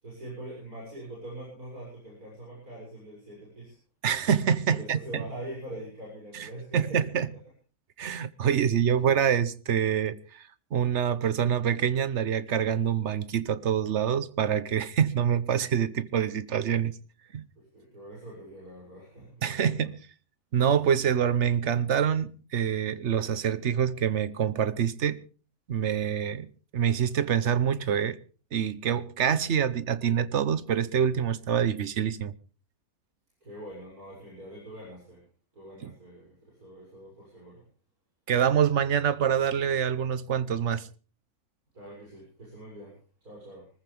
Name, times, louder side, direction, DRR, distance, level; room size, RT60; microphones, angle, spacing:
voice 1, 0.0-3.8 4.7-7.0 17.6-19.9 33.4-35.2 35.5-37.6 41.7-43.7, right 1 dB, 80° right, 7.3 m, -43 dB
voice 2, 4.0-5.0 6.3-6.5 6.7-7.3 8.0-16.9 17.3-17.4 19.4-19.9 20.5-25.2 25.7-26.5 26.7-28.2 28.5-32.3 35.8-35.9 38.3-40.9, right 8 dB, 55° right, 1.1 m, -26 dB
24.5 x 14.5 x 3.4 m
omnidirectional pair, 1.5 m